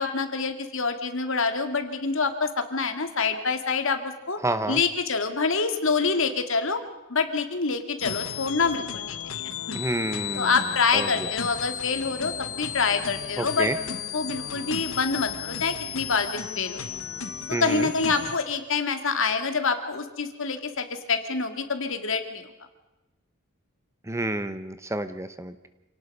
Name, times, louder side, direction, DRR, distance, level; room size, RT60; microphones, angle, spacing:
voice 1, 0.0-4.4 4.7-6.8 7.1-9.8 10.3-13.7 14.1-16.3 16.6-16.8 17.5-22.5, left 4 dB, 65° left, 7 dB, 2.2 m, -26 dB
voice 2, 4.4-4.8 9.7-10.5 10.9-11.3 13.4-13.8 17.5-17.9 24.0-25.6, right 1 dB, 15° right, 11 dB, 1.0 m, -29 dB
sound 1, 8.0-18.4, left 8 dB, 90° left, 1.5 m, -34 dB
27.5 x 18.5 x 5.5 m, 1.0 s
head